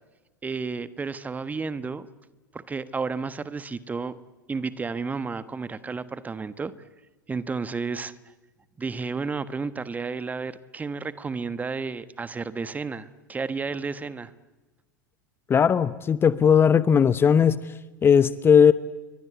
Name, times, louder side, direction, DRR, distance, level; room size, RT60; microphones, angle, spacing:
voice 1, 0.4-2.1 2.5-4.2 4.5-6.7 7.3-8.1 8.8-14.3, right 4 dB, 15° right, 15 dB, 1.3 m, -32 dB
voice 2, 15.5-17.6 18.0-18.7, left 7 dB, 20° left, 16 dB, 0.9 m, -18 dB
30.0 x 23.5 x 8.2 m, 1.1 s
figure-of-eight pair, 85°, 10 cm